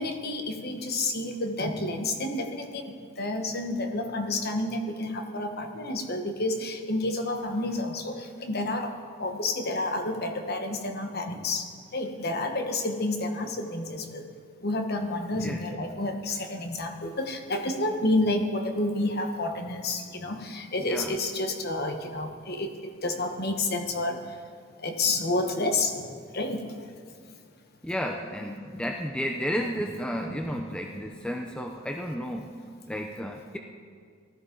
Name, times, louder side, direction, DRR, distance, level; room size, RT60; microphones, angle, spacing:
voice 1, 0.0-2.9 3.2-8.9 9.2-11.6 11.9-14.2 14.6-22.8 23.0-24.2 24.8-25.9 26.3-26.6 29.5-29.7 30.2-30.8, left 2 dB, 45° left, 5 dB, 1.2 m, -30 dB
voice 2, 20.8-21.2 27.8-32.5 32.9-33.6, equal, 5° left, 2 dB, 0.5 m, -32 dB
18.5 x 13.0 x 3.9 m, 2.1 s
head